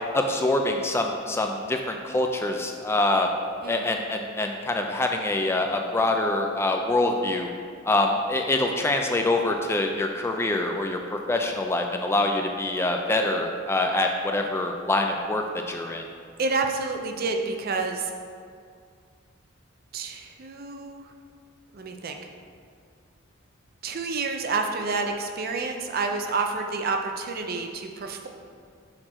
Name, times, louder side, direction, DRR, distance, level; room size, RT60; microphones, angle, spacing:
voice 1, 0.1-3.3 3.7-7.5 7.8-16.0, left 2 dB, 15° left, 3 dB, 0.3 m, -25 dB
voice 2, 16.4-18.1 19.9-21.1 21.7-22.2 23.8-28.3, right 4 dB, 50° right, 4 dB, 0.5 m, -29 dB
6.6 x 4.4 x 4.3 m, 2.2 s
head